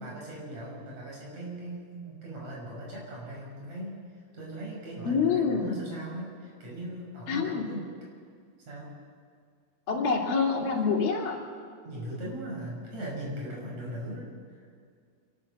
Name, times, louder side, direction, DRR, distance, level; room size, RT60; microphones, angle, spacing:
voice 1, 0.0-4.0 4.3-7.9 8.6-8.9 11.8-14.3 14.5-14.6, right 1 dB, 50° right, -3 dB, 7.2 m, -39 dB
voice 2, 5.0-5.8 7.3-7.7 9.9-11.4, left 5 dB, 75° left, -2 dB, 4.5 m, -26 dB
26.5 x 13.0 x 7.8 m, 2.1 s
omnidirectional pair, 4.2 m